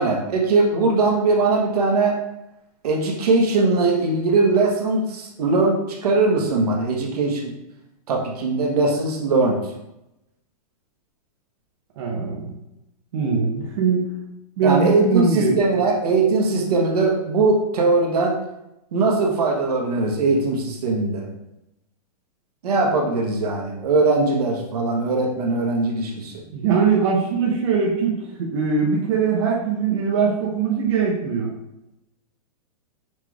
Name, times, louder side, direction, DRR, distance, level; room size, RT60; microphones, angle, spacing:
voice 1, 0.0-2.1 2.8-7.5 8.1-9.6 14.6-18.3 18.9-21.3 22.6-26.3, right 3 dB, 75° right, 0 dB, 1.1 m, -20 dB
voice 2, 12.0-12.5 13.1-14.1 14.6-15.8 26.5-31.5, right 5 dB, 45° right, -3 dB, 0.8 m, -21 dB
5.8 x 3.1 x 2.3 m, 0.89 s
supercardioid pair, 170°, 20 cm